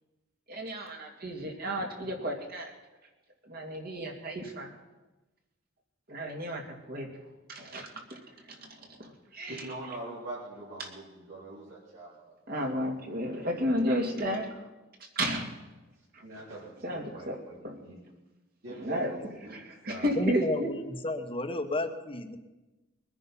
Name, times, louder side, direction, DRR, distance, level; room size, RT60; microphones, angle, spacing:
voice 1, 0.5-2.7 3.4-4.8 6.1-7.1 7.5-8.2 8.5-9.7 10.8-10.9 12.5-14.6 15.0-15.6 16.1-16.2 16.8-17.9 18.7-20.8, equal, 50° right, 2 dB, 2.5 m, -33 dB
voice 2, 9.5-12.1 16.2-18.0 18.6-19.2 19.4-19.6 19.9-20.1, right 2 dB, 70° right, -8 dB, 4.1 m, -43 dB
voice 3, 20.2-22.4, left 2 dB, 25° left, 7 dB, 1.2 m, -32 dB
22.0 x 9.8 x 5.7 m, 1.1 s
head